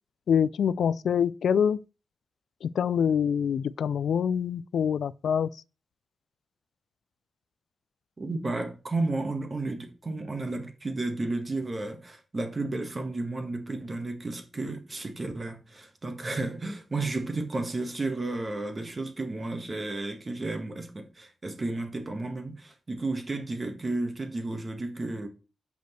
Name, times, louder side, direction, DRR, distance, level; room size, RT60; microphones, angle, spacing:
voice 1, 0.3-1.8 2.6-5.5, left 8 dB, 85° left, 0.3 m, -25 dB
voice 2, 8.2-25.3, right 2 dB, 30° right, 1.6 m, -32 dB
6.1 x 5.2 x 6.7 m
wide cardioid pair, 135°, 0 cm